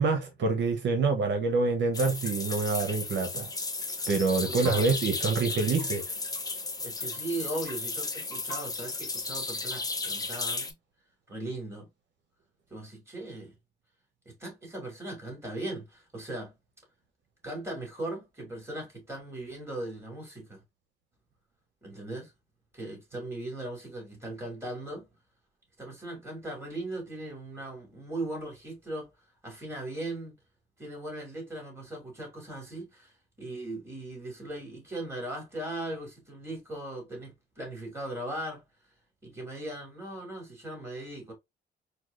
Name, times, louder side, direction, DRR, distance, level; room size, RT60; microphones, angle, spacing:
voice 1, 0.0-3.5 4.1-6.0, right 4 dB, 65° right, 0.8 m, -26 dB
sound 1, 1.9-10.7, left 3 dB, 20° left, 0.7 m, -34 dB
voice 2, 4.5-4.9 6.8-10.7 11.3-11.9 12.7-13.5 14.3-16.5 17.4-20.6 21.8-22.3 22.7-25.1 25.8-29.1 29.4-30.3 30.8-33.1 33.4-38.6 39.2-41.3, right 1 dB, 15° right, 2.4 m, -38 dB
4.5 x 2.3 x 2.4 m
cardioid pair, 90°, 20 cm